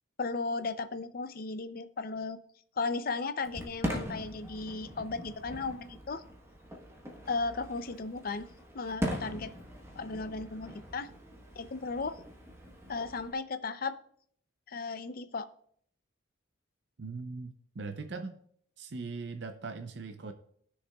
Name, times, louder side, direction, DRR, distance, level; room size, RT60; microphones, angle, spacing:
voice 1, 0.2-2.4 2.8-6.2 7.3-8.5 8.7-9.5 10.0-11.1 11.5-12.2 12.9-14.0 14.7-15.5, left 4 dB, 45° left, 11 dB, 0.5 m, -35 dB
Fireworks, 3.4-13.3, equal, 15° right, 1.1 m, -41 dB
voice 2, 17.0-18.3 18.8-20.3, right 4 dB, 55° right, 7 dB, 0.5 m, -40 dB
18.0 x 6.4 x 2.3 m, 0.63 s
head